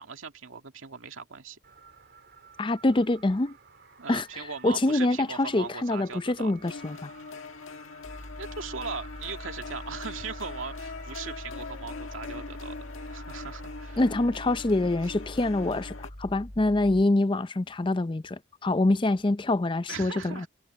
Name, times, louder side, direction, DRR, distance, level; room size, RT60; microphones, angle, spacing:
voice 1, 0.0-1.6 4.0-6.5 8.4-12.8 13.1-14.0 19.9-20.5, right 5 dB, 75° right, 2.2 m, -39 dB
sound 1, 1.6-15.8, right 5 dB, 55° right, 4.3 m, -54 dB
voice 2, 2.6-3.6 4.1-4.3 4.6-7.1 14.0-20.5, left 2 dB, 25° left, 0.5 m, -25 dB
sound 2, 6.6-16.1, left 4 dB, 85° left, 1.5 m, -42 dB
sound 3, 8.0-17.0, equal, 45° left, 3.2 m, -43 dB
head